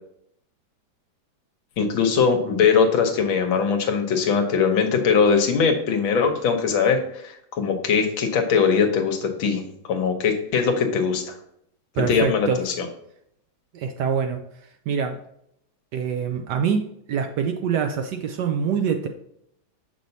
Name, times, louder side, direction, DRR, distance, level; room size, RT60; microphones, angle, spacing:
voice 1, 1.8-9.6 9.9-11.3 12.1-12.9, left 6 dB, 80° left, 5 dB, 1.7 m, -21 dB
voice 2, 11.9-12.6 13.7-14.4 14.9-15.2 15.9-19.1, right 6 dB, 75° right, 6 dB, 1.0 m, -25 dB
6.8 x 6.1 x 2.7 m, 0.74 s
omnidirectional pair, 2.2 m